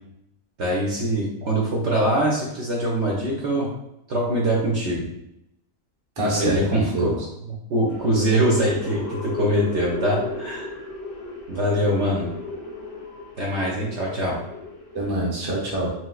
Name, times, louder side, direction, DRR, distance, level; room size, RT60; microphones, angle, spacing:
voice 1, 0.6-3.7 4.1-5.1 6.4-7.1 7.5-10.8 11.5-12.3 13.4-14.4, right 1 dB, 60° right, -3 dB, 0.8 m, -23 dB
voice 2, 6.2-7.2 14.9-15.9, right 1 dB, 25° right, -4 dB, 0.6 m, -25 dB
sound 1, 7.9-15.1, left 2 dB, 90° left, 1.2 m, -34 dB
3.1 x 3.0 x 2.3 m, 0.82 s
omnidirectional pair, 1.5 m